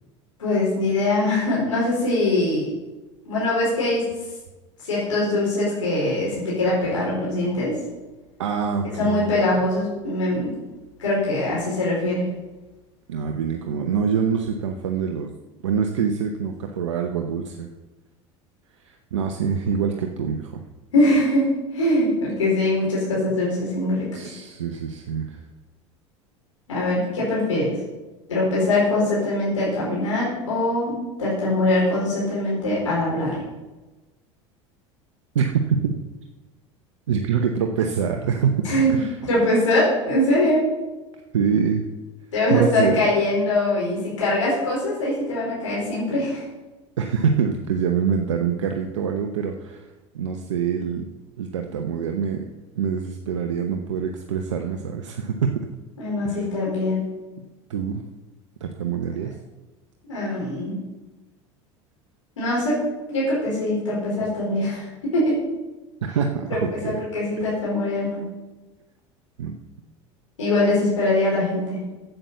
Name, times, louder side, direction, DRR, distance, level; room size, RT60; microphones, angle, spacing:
voice 1, 0.4-2.7 3.3-4.1 4.9-7.8 9.0-10.6 11.0-12.3 20.9-24.1 26.7-27.7 28.3-33.4 38.6-40.7 42.3-46.4 56.0-57.1 60.1-60.8 62.4-62.8 63.1-65.4 66.5-68.2 70.4-71.8, left 1 dB, 90° left, -6 dB, 4.6 m, -22 dB
voice 2, 8.4-9.2 13.1-15.3 15.6-17.7 18.8-20.6 24.1-25.4 35.3-35.9 37.1-38.5 38.9-39.2 41.3-41.9 42.5-43.1 46.1-46.2 47.0-51.0 51.4-52.5 52.8-55.7 56.2-56.5 57.7-58.0 58.6-59.4 66.0-67.0 67.4-67.5 69.4-69.6, right 6 dB, 85° right, 4 dB, 0.9 m, -25 dB
8.9 x 7.9 x 6.9 m, 1.1 s
hypercardioid pair, 80°, 15 cm